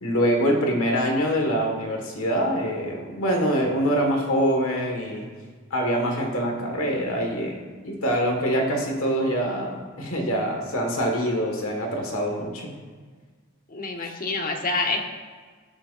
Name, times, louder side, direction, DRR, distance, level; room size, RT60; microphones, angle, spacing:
voice 1, 0.0-5.3 5.7-12.7, equal, 75° left, 1 dB, 1.6 m, -24 dB
voice 2, 13.7-15.0, left 3 dB, 40° left, 2 dB, 1.1 m, -27 dB
14.0 x 7.8 x 2.5 m, 1.5 s
head